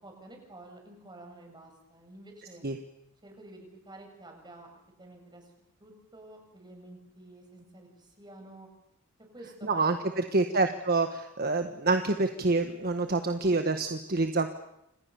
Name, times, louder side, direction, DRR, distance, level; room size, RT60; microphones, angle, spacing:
voice 1, 0.0-2.6 3.2-4.7 5.0-5.5 5.8-8.7 9.3-10.7, right 2 dB, 20° right, 2 dB, 7.8 m, -50 dB
voice 2, 9.6-14.5, right 3 dB, 45° right, 7 dB, 1.5 m, -27 dB
29.5 x 26.0 x 7.1 m, 0.84 s
head